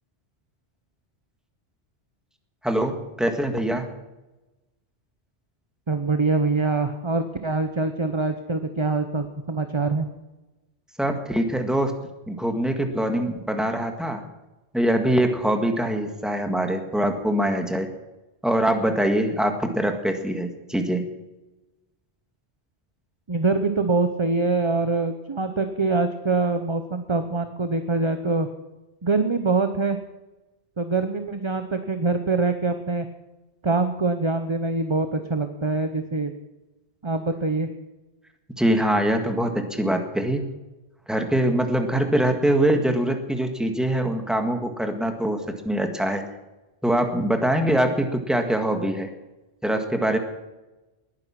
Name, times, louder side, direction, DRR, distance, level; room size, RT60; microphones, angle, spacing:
voice 1, 2.6-3.9 11.0-11.9 12.3-14.2 14.7-17.9 18.4-21.1 38.6-40.5 41.1-45.4 45.7-46.2 46.8-49.1 49.6-50.2, right 1 dB, ahead, 4 dB, 1.8 m, -23 dB
voice 2, 5.9-10.1 23.3-28.5 29.0-30.0 30.8-33.1 33.6-36.3 37.0-37.7, right 3 dB, 30° right, 8 dB, 0.9 m, -24 dB
20.0 x 10.0 x 6.0 m, 1.1 s
omnidirectional pair, 1.1 m